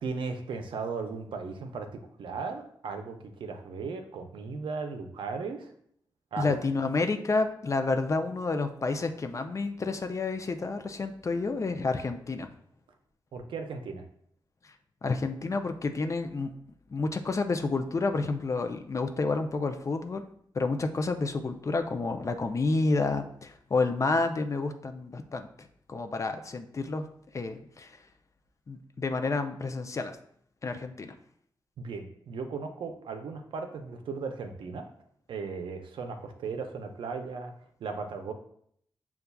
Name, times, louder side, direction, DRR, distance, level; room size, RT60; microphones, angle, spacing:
voice 1, 0.0-5.7 6.3-6.6 13.3-14.0 31.8-34.9 35.3-37.5 37.8-38.3, right 4 dB, 80° right, 5 dB, 0.5 m, -36 dB
voice 2, 6.4-12.5 15.0-16.5 16.9-20.2 20.5-27.0 27.3-28.0 28.7-30.2 30.6-31.1, left 3 dB, 40° left, 7 dB, 0.4 m, -30 dB
6.7 x 2.3 x 2.2 m, 0.66 s
cardioid pair, 70°, 8 cm